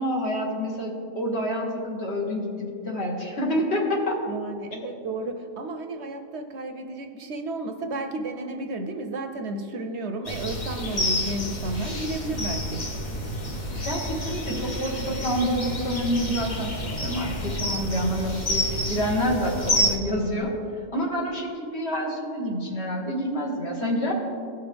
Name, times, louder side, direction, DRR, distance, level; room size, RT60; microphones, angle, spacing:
voice 1, 0.0-4.2 13.8-20.5 20.9-24.1, equal, 55° left, -2 dB, 1.8 m, -28 dB
voice 2, 4.3-12.8, right 2 dB, 65° right, 5 dB, 0.9 m, -32 dB
sound 1, 10.2-20.0, left 1 dB, 35° left, 1.1 m, -29 dB
16.5 x 5.7 x 3.4 m, 2.4 s
omnidirectional pair, 1.4 m